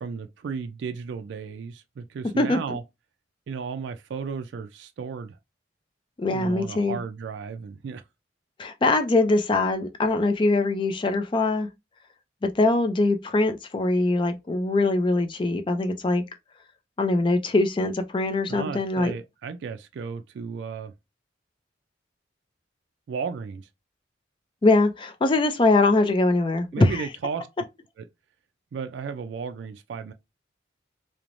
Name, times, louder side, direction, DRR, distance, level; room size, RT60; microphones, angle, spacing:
voice 1, 0.0-2.8 3.5-5.4 6.3-8.0 18.5-20.9 23.1-23.7 26.7-27.5 28.0-28.1 28.7-30.1, right 5 dB, 70° right, 0.3 m, -34 dB
voice 2, 2.4-2.8 6.2-7.0 8.6-11.7 12.4-16.2 17.0-19.1 24.6-27.1, left 2 dB, 25° left, 0.4 m, -22 dB
3.0 x 2.0 x 2.5 m
head